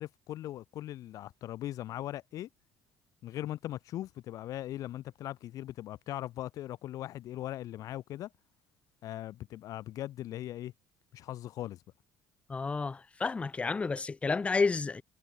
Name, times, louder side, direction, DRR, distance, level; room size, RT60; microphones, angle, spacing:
voice 1, 0.0-2.5 3.2-8.3 9.0-10.7 11.1-11.8, left 13 dB, 60° left, 5.8 m, -39 dB
voice 2, 12.5-15.0, left 4 dB, 20° left, 0.9 m, -30 dB
cardioid pair, 130°, 7 cm